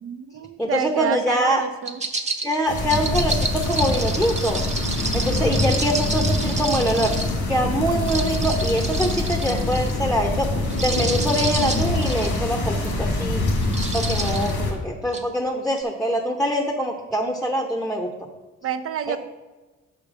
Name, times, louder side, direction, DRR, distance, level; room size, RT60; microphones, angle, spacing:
voice 1, 0.0-2.0 18.6-19.2, right 8 dB, 50° right, 10 dB, 0.6 m, -28 dB
voice 2, 0.6-1.6 2.4-4.6 5.1-10.5 10.8-13.4 13.9-18.1 19.1-19.2, equal, ahead, 3 dB, 0.8 m, -24 dB
sound 1, 1.8-7.4 8.0-9.9 10.6-12.4 12.9-13.1 13.6-14.5 15.1-15.2, right 3 dB, 25° right, 0.9 m, -29 dB
sound 2, 2.7-14.7, left 2 dB, 85° left, 2.0 m, -25 dB
6.4 x 5.1 x 6.2 m, 1.2 s
cardioid pair, 90°, 30 cm